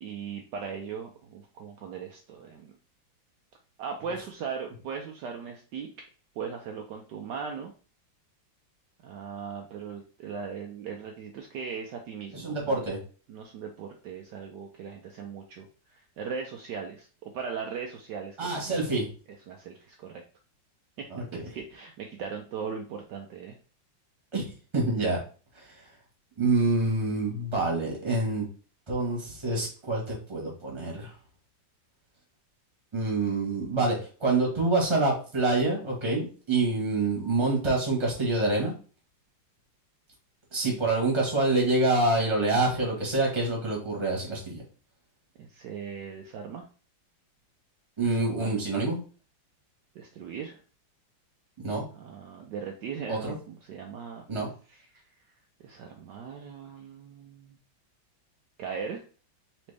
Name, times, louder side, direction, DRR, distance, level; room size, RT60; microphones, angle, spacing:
voice 1, 0.0-2.7 3.8-6.0 6.4-7.7 9.0-12.8 13.3-18.8 19.5-20.2 21.0-21.1 21.3-23.6 45.4-46.6 48.1-48.5 49.9-50.6 51.9-54.2 54.7-55.1 55.6-57.6 58.6-59.0, right 6 dB, 70° right, 2 dB, 1.1 m, -39 dB
voice 2, 12.3-13.0 18.4-19.1 21.1-21.4 24.3-25.2 25.6-25.7 26.4-28.5 28.9-31.1 32.9-33.9 34.2-38.7 40.5-44.6 48.0-49.0 51.6-51.8 53.1-53.3 54.3-54.5, right 2 dB, 15° right, -2 dB, 1.2 m, -26 dB
4.2 x 3.0 x 3.3 m, 0.39 s
omnidirectional pair, 2.1 m